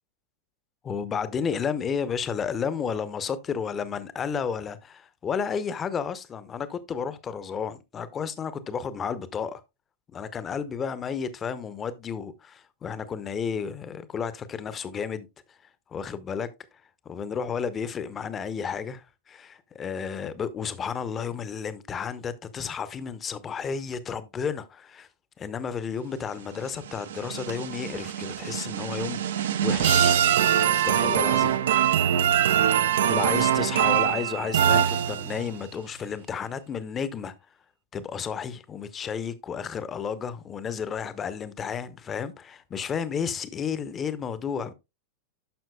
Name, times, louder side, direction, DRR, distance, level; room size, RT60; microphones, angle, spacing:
voice 1, 0.8-9.6 10.1-15.3 15.9-16.5 17.0-25.1 25.4-30.2 30.8-31.6 33.1-37.3 37.9-44.7, left 6 dB, 25° left, 0.8 m, -32 dB
sound 1, 26.6-35.6, right 9 dB, 60° right, 0.6 m, -23 dB
11.5 x 6.0 x 2.3 m
figure-of-eight pair, 90°, 0 cm